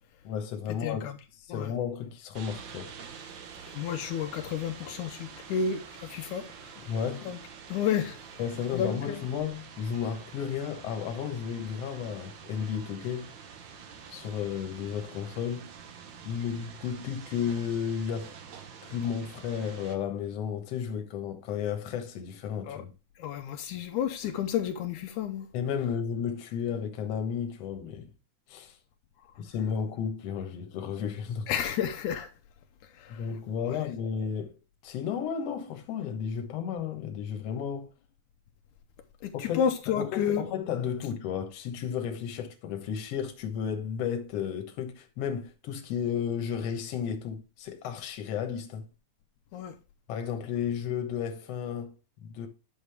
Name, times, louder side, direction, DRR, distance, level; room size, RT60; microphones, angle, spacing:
voice 1, 0.2-2.9 6.8-7.3 8.4-13.3 14.1-15.7 16.3-18.3 18.8-22.9 25.5-28.1 28.5-28.8 29.4-31.5 33.1-34.6 34.8-37.9 39.3-48.8 50.1-52.5, left 7 dB, 60° left, 2.1 m, -33 dB
voice 2, 0.8-1.1 1.5-1.7 3.7-6.8 7.3-7.4 7.7-8.2 8.7-9.2 22.7-22.8 23.2-25.5 31.5-32.3 33.0-33.2 33.7-33.8 39.2-40.4 49.5-49.8, left 8 dB, 80° left, 2.2 m, -31 dB
sound 1, 2.3-20.0, right 7 dB, 80° right, 1.0 m, -47 dB
9.6 x 6.3 x 3.4 m
omnidirectional pair, 3.6 m